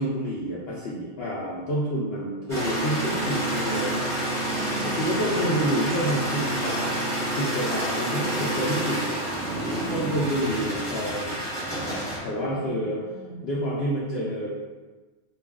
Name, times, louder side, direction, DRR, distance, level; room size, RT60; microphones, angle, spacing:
voice 1, 0.0-4.1 4.8-6.9 7.3-9.0 9.9-11.4 12.2-13.0 13.4-14.5, equal, 65° left, -7 dB, 0.6 m, -28 dB
sound 1, 2.5-12.2, right 1 dB, 25° right, 0.7 m, -28 dB
voice 2, 4.4-5.3 9.4-10.1 12.4-13.5, right 1 dB, 55° right, -6 dB, 0.8 m, -40 dB
2.4 x 2.3 x 3.5 m, 1.3 s
omnidirectional pair, 1.5 m